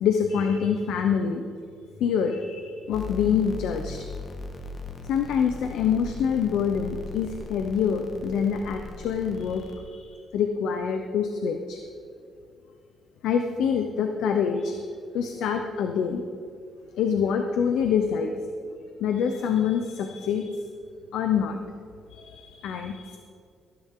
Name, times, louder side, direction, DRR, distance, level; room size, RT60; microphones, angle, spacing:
voice 1, 0.0-1.4 2.0-4.0 5.1-11.8 13.2-14.8 15.1-16.2 17.0-18.3 18.6-20.6 21.1-21.6 22.1-23.2, left 7 dB, 80° left, 5 dB, 0.8 m, -26 dB
sound 1, 2.9-9.8, left 3 dB, 40° left, 1.6 m, -39 dB
18.0 x 10.5 x 3.8 m, 2.4 s
cardioid pair, 90°, 0 cm